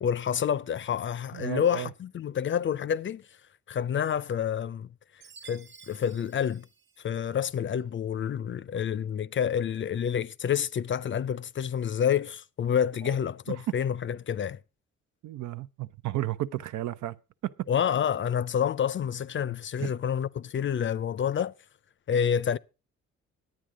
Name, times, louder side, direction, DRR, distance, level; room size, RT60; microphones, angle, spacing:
voice 1, 0.0-3.2 3.7-4.9 5.4-6.7 7.0-14.6 17.7-21.5 22.1-22.6, left 8 dB, 40° left, 0.5 m, -28 dB
voice 2, 1.3-1.9 13.0-13.2 13.7-13.8 15.2-17.2 17.4-17.7 19.8-19.9, right 14 dB, 75° right, 0.6 m, -33 dB
Chime, 5.2-7.5, right 5 dB, 40° right, 0.8 m, -53 dB
10.5 x 9.0 x 5.0 m
cardioid pair, 90°, 30 cm